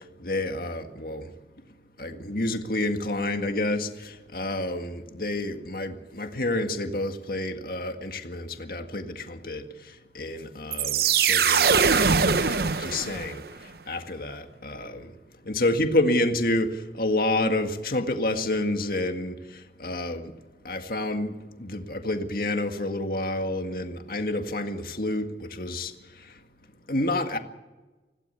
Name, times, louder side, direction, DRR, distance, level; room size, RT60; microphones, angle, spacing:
voice 1, 0.2-1.3 2.0-15.1 15.4-20.3 20.6-26.4 26.9-27.4, left 1 dB, 55° left, 2.0 m, -29 dB
sound 1, 10.7-13.5, right 6 dB, 60° right, 0.8 m, -22 dB
25.5 x 16.5 x 6.9 m
head